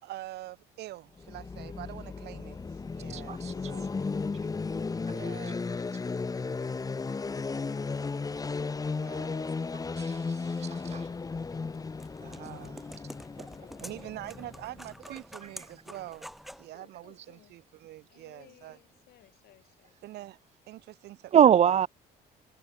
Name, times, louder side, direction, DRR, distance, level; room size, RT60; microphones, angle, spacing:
voice 1, 0.0-2.6 2.9-3.4 3.7-3.9 5.1-5.8 8.9-9.7 12.2-12.9 13.8-16.3 16.6-18.8 20.0-20.4 20.7-21.7, right 15 dB, 75° right, 2.7 m, -45 dB
sound 1, 1.2-15.1, left 4 dB, 20° left, 1.3 m, -35 dB
voice 2, 2.5-4.9 10.8-11.6 13.4-14.6 16.7-17.5 18.1-20.0, left 13 dB, 70° left, 4.7 m, -61 dB
voice 3, 3.1-3.5 10.0-11.1 21.3-21.9, right 9 dB, 40° right, 0.5 m, -24 dB
sound 2, 11.7-16.7, equal, ahead, 5.6 m, -48 dB
cardioid pair, 110°, 17 cm